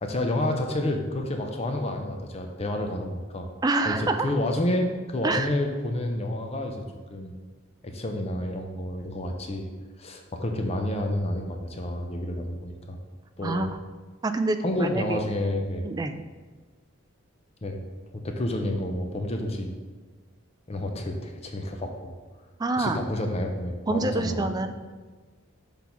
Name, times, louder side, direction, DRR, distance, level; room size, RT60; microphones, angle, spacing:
voice 1, 0.0-3.5 3.8-6.8 7.1-7.3 7.8-9.7 10.0-13.0 13.4-13.7 14.6-15.8 17.6-17.8 18.1-19.7 20.7-22.1 22.8-24.6, left 1 dB, 30° left, 4 dB, 0.6 m, -29 dB
voice 2, 3.6-4.3 5.2-5.5 13.4-13.7 14.2-15.2 15.8-16.2 22.6-23.0 23.9-24.7, right 2 dB, 20° right, 7 dB, 0.3 m, -26 dB
6.0 x 3.5 x 5.7 m, 1.4 s
head